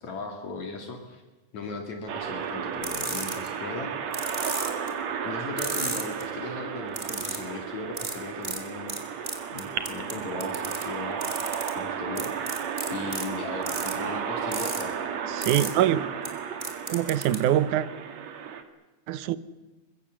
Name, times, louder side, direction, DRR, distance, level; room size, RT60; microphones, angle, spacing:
voice 1, 0.0-1.2 1.5-3.9 5.2-9.0 9.5-12.3 12.9-15.0, left 3 dB, 70° left, 3.6 m, -37 dB
sound 1, 2.1-18.6, right 7 dB, 65° right, 2.9 m, -33 dB
sound 2, 2.8-3.5 4.1-4.9 5.6-6.2 6.9-7.4 8.0-8.1 8.4-8.6 8.9-9.0 9.2-10.1 10.4-10.8 11.2-11.7 12.2-13.2 13.6-13.9 14.5-14.8 15.4-15.7 16.3-16.4 16.6-17.4, right 2 dB, 20° right, 3.0 m, -32 dB
voice 2, 15.3-16.1 16.9-17.9 19.1-19.4, right 12 dB, 85° right, 2.4 m, -24 dB
24.0 x 22.5 x 7.5 m
omnidirectional pair, 3.4 m